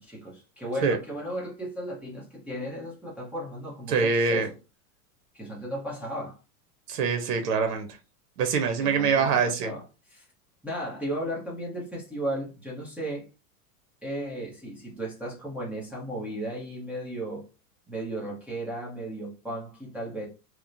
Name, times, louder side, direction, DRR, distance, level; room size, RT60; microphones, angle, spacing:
voice 1, 0.0-4.6 5.3-6.4 8.8-10.2 10.6-13.3 14.0-17.5 17.9-20.3, right 1 dB, 5° right, 0.6 m, -35 dB
voice 2, 3.9-4.5 6.9-7.9 8.4-9.7, right 5 dB, 85° right, 0.8 m, -24 dB
2.9 x 2.1 x 2.5 m
supercardioid pair, 130°, 47 cm